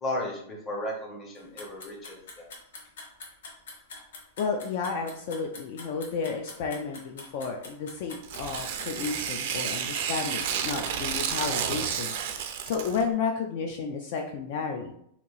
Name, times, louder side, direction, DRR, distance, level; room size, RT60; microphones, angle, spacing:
voice 1, 0.0-2.5, left 1 dB, 15° left, -1 dB, 0.7 m, -34 dB
sound 1, 1.4-11.4, left 3 dB, 90° left, 1.0 m, -44 dB
voice 2, 4.4-12.1 12.6-14.9, left 5 dB, 45° left, 2 dB, 0.3 m, -32 dB
Tearing, 8.2-13.0, right 8 dB, 45° right, 0.4 m, -31 dB
2.9 x 2.6 x 3.9 m, 0.70 s
supercardioid pair, 175°, 0 cm